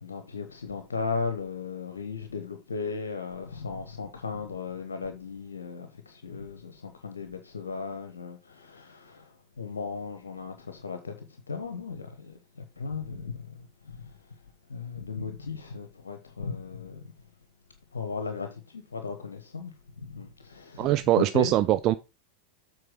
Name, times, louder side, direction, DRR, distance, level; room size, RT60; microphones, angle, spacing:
voice 1, 0.0-13.6 13.8-14.1 14.7-17.1 17.9-19.7 20.0-21.5, left 5 dB, 70° left, 1.0 m, -36 dB
voice 2, 20.8-22.0, right 14 dB, 35° right, 0.4 m, -22 dB
7.8 x 4.6 x 4.6 m
figure-of-eight pair, 90°, 0 cm